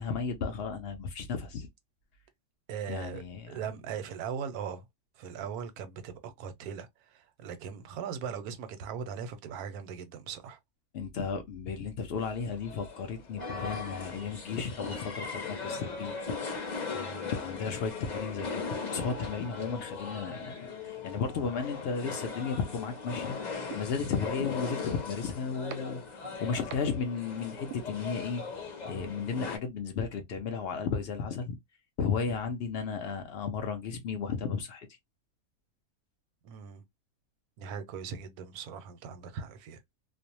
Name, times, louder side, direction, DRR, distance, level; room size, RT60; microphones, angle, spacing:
voice 1, 0.0-1.7 2.9-3.6 10.9-16.2 17.3-23.4 23.7-28.4 28.8-31.6 32.0-34.9, left 5 dB, 80° left, 0.5 m, -34 dB
voice 2, 2.7-4.8 5.2-10.6 16.9-17.3 32.3-32.4 36.4-36.8 37.6-39.8, right 7 dB, 85° right, 1.1 m, -39 dB
sound 1, 12.3-29.6, left 4 dB, 40° left, 0.7 m, -39 dB
sound 2, 23.7-23.8 24.7-24.8 25.7-25.8 26.7-26.8 27.7-27.8, right 9 dB, 65° right, 0.8 m, -38 dB
2.5 x 2.0 x 2.7 m
omnidirectional pair, 1.6 m